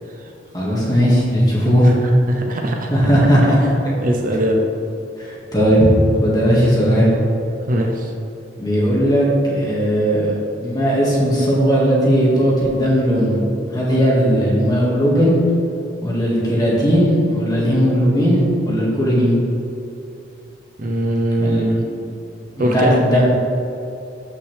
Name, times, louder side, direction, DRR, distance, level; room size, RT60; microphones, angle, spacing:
voice 1, 0.5-1.9 2.9-3.6 5.2-5.9 6.2-7.1 8.6-13.4 13.7-15.4 16.0-19.4 21.4-21.7 22.6-23.3, equal, 20° left, -5 dB, 2.0 m, -17 dB
voice 2, 2.3-2.9 4.0-4.7 7.7-8.1 20.8-21.8 22.6-23.3, equal, 45° right, 2 dB, 0.7 m, -21 dB
13.0 x 5.6 x 3.4 m, 2.7 s
head